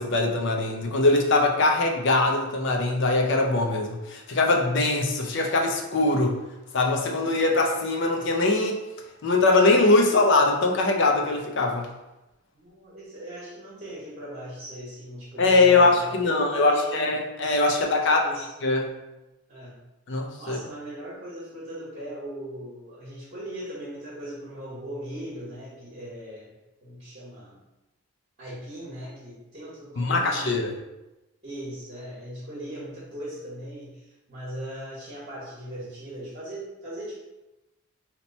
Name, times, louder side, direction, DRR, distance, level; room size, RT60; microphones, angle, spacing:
voice 1, 0.0-6.4 6.7-8.8 9.2-11.9 15.4-18.2 18.6-18.9 20.1-20.6 30.0-30.7, left 2 dB, 55° left, 2 dB, 0.5 m, -22 dB
voice 2, 12.5-17.2 17.7-18.4 19.5-19.8 20.4-26.5 26.8-27.6 28.4-30.6 31.4-33.9 34.3-37.2, right 1 dB, 40° right, -8 dB, 1.0 m, -39 dB
2.9 x 2.1 x 4.0 m, 1.0 s
head